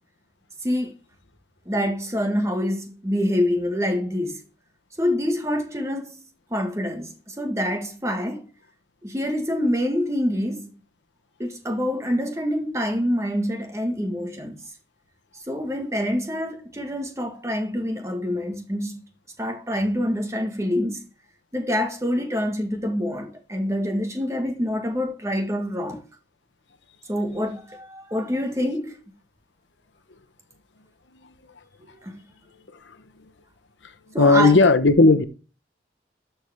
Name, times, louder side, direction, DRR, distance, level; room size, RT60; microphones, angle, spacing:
voice 1, 0.6-0.9 1.6-4.4 5.0-8.5 9.0-10.7 11.4-14.6 15.5-19.0 19.4-21.1 21.5-26.0 27.1-29.0 32.0-32.2 34.1-34.6, equal, 15° right, 1.6 m, -26 dB
voice 2, 34.2-35.2, left 3 dB, 85° left, 1.0 m, -15 dB
13.0 x 4.6 x 3.5 m
head